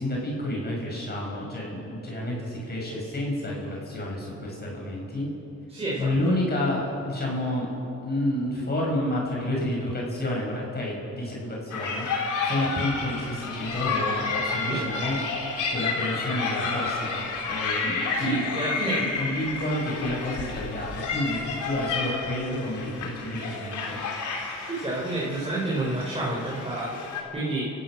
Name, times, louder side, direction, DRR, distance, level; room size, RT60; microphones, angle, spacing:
voice 1, 0.0-5.3 6.0-7.7 8.0-15.2 15.7-18.4 19.0-24.0, left 1 dB, 35° left, -2 dB, 6.8 m, -30 dB
voice 2, 5.7-6.1 14.7-14.8 18.1-19.0 19.4-19.5 24.6-27.7, right 2 dB, 20° right, -6 dB, 5.5 m, -29 dB
sound 1, 11.7-27.2, left 4 dB, 75° left, 3.8 m, -31 dB
29.5 x 16.0 x 6.5 m, 2.8 s
cardioid pair, 90°, 30 cm